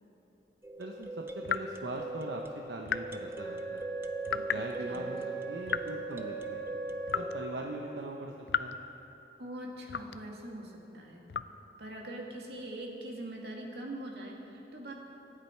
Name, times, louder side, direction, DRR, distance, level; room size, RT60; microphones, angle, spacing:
sound 1, 0.6-7.4, right 1 dB, 15° right, 0.5 m, -41 dB
voice 1, 0.8-2.4 2.7-3.9 4.3-6.6 7.1-8.3 8.6-8.8, right 2 dB, 90° right, 1 dB, 0.9 m, -41 dB
sound 2, 1.4-1.7 2.9-3.2 4.3-4.7 5.7-5.9 7.1-7.4 8.5-8.8 9.9-10.3 11.3-11.6, left 7 dB, 75° left, 0.4 m, -33 dB
Wind instrument woodwind instrument, 3.3-8.0, right 5 dB, 25° left, 1.9 m, -40 dB
voice 2, 9.4-11.2 11.8-14.9, right 1 dB, 70° right, -1 dB, 2.2 m, -42 dB
26.0 x 8.8 x 4.5 m, 3.0 s
head